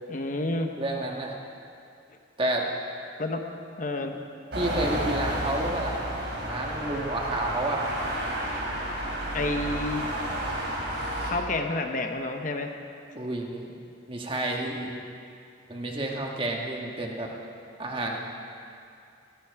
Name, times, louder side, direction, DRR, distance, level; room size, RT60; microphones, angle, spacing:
voice 1, 0.1-0.7 3.2-3.4 3.8-4.1 9.3-10.1 11.2-12.7, left 2 dB, 40° left, 4 dB, 0.9 m, -29 dB
voice 2, 0.8-1.3 2.4-2.7 3.9-4.1 4.5-6.1 6.4-7.9 13.1-13.7 14.1-14.9 15.7-17.3 17.8-18.2, right 1 dB, 25° right, 0 dB, 1.5 m, -30 dB
sound 1, 4.5-11.3, right 1 dB, 60° right, 4.0 m, -31 dB
18.5 x 15.0 x 4.7 m, 2.5 s
head